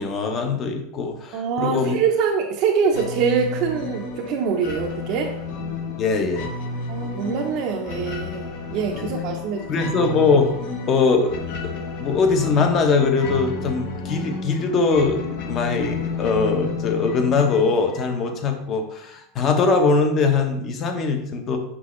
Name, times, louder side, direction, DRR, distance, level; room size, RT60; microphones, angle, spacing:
voice 1, 0.0-2.0 6.0-6.5 9.0-9.1 9.7-10.5 10.9-11.4 12.0-21.6, left 4 dB, 30° left, 5 dB, 0.9 m, -21 dB
voice 2, 1.3-5.4 6.9-9.9, right 6 dB, 45° right, -1 dB, 0.8 m, -24 dB
sound 1, 2.9-18.4, left 4 dB, 55° left, 1.1 m, -31 dB
6.1 x 5.3 x 3.2 m, 0.78 s
supercardioid pair, 155°, 0 cm